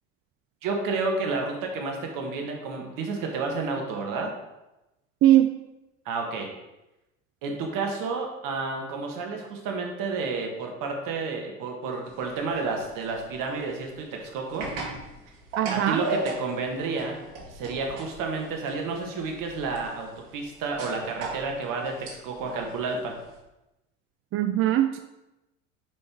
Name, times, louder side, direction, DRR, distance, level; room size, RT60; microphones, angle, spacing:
voice 1, 0.6-4.3 6.1-6.5 7.4-14.7 15.7-17.2 17.5-23.2, right 4 dB, 55° right, 2 dB, 1.8 m, -30 dB
sound 1, 12.1-23.4, right 2 dB, 70° right, 2.0 m, -38 dB
voice 2, 15.6-16.0 24.3-25.0, right 12 dB, 35° right, 8 dB, 0.4 m, -20 dB
5.6 x 5.2 x 4.6 m, 0.97 s
hypercardioid pair, 80°, 39 cm